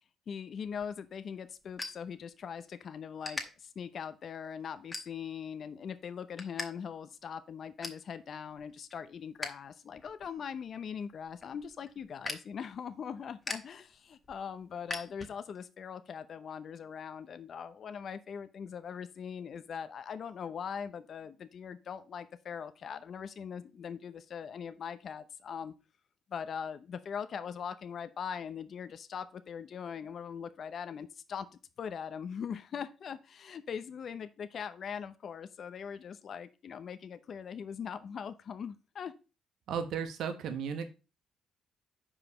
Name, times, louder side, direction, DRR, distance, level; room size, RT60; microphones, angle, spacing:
voice 1, 0.3-25.7 26.3-31.5 31.8-39.1, left 7 dB, 55° left, 11 dB, 0.7 m, -41 dB
sound 1, 0.6-2.7 3.2-3.4 4.0-4.2 4.9-5.5 5.9-6.7 7.0-7.1 7.4-8.1 8.5-9.6 9.9-15.6, left 2 dB, 20° left, 1.8 m, -42 dB
voice 2, 39.7-40.9, right 7 dB, 80° right, 8 dB, 1.1 m, -35 dB
5.7 x 4.9 x 6.6 m, 0.32 s
cardioid pair, 90°, 0 cm